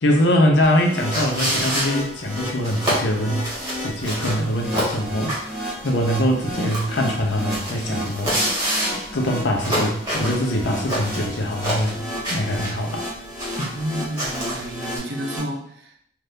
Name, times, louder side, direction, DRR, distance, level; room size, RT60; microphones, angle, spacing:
voice 1, 0.0-3.4 3.8-8.4 9.1-12.0 12.3-13.1 13.5-13.7, equal, 70° left, 2 dB, 0.6 m, -23 dB
sound 1, 0.6-15.4, equal, 5° left, 0.8 m, -33 dB
sound 2, 1.1-15.0, right 1 dB, 20° right, 1.3 m, -28 dB
voice 2, 13.7-16.1, right 1 dB, 60° right, 2 dB, 0.5 m, -31 dB
2.7 x 2.4 x 3.4 m, 0.66 s
head